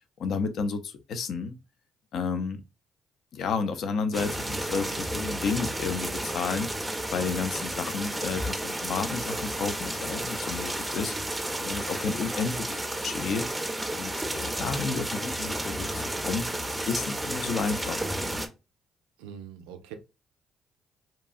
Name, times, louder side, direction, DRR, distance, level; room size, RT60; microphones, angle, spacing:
voice 1, 0.2-1.5 2.1-2.6 3.3-6.7 7.1-11.1 11.6-13.5 14.0-16.5 16.9-18.1, left 5 dB, 65° left, 0.4 m, -31 dB
sound 1, 4.1-18.5, right 1 dB, 15° right, 0.4 m, -32 dB
voice 2, 19.2-19.9, right 8 dB, 90° right, 0.3 m, -43 dB
2.7 x 2.3 x 2.4 m
supercardioid pair, 55°, 0 cm